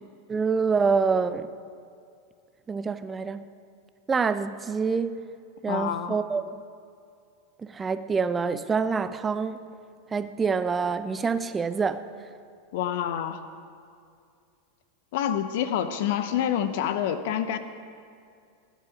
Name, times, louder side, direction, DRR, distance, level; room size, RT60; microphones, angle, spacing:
voice 1, 0.3-1.5 2.7-3.5 4.1-5.3 5.6-6.6 7.6-9.6 10.1-12.0, right 5 dB, 20° right, 12 dB, 0.6 m, -26 dB
voice 2, 5.7-6.2 12.7-13.4 15.1-17.6, left 10 dB, 65° left, 11 dB, 0.8 m, -27 dB
17.5 x 9.9 x 5.1 m, 2.4 s
hypercardioid pair, 100°, 0 cm